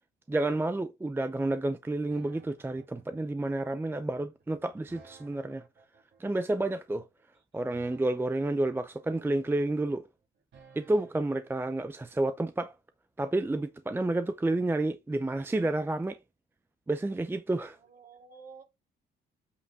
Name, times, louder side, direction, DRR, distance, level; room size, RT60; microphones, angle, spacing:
voice 1, 0.3-5.6 6.2-7.0 7.5-10.0 10.8-12.7 13.2-16.2 16.9-17.8, right 2 dB, 10° right, 0.5 m, -30 dB
sound 1, 2.1-11.7, right 5 dB, 65° right, 2.7 m, -58 dB
voice 2, 17.7-18.6, right 5 dB, 50° right, 3.2 m, -52 dB
8.3 x 5.0 x 3.6 m
cardioid pair, 90°, 20 cm